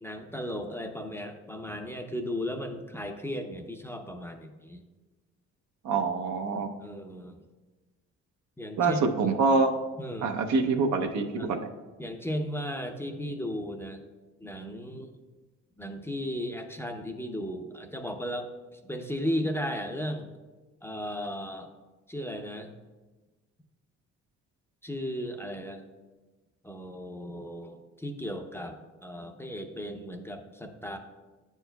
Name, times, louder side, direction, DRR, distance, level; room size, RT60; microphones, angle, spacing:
voice 1, 0.0-4.8 6.8-7.5 8.6-9.3 10.0-10.4 11.4-11.5 12.0-14.0 14.4-15.1 15.8-20.3 20.8-21.7 22.1-22.7 24.8-25.9 26.6-31.0, equal, 10° left, 4 dB, 0.5 m, -35 dB
voice 2, 5.8-6.7 8.8-9.7 10.2-11.6, right 4 dB, 70° right, 5 dB, 0.7 m, -25 dB
9.5 x 4.7 x 2.2 m, 1.2 s
cardioid pair, 90°, 30 cm